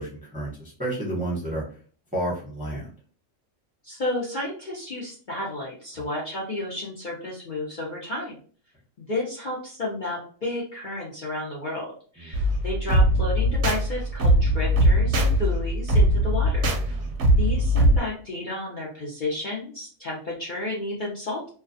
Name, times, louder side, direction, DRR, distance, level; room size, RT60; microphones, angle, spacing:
voice 1, 0.0-1.6 2.1-2.9 6.0-6.1 12.2-12.4 16.9-17.2, right 1 dB, 10° right, -5 dB, 0.7 m, -31 dB
voice 2, 3.8-8.3 9.0-17.0 17.4-21.5, left 2 dB, 50° left, -4 dB, 0.7 m, -32 dB
sound 1, 12.3-18.0, equal, 65° right, 0.8 m, -21 dB
2.4 x 2.3 x 2.5 m, 0.42 s
omnidirectional pair, 1.4 m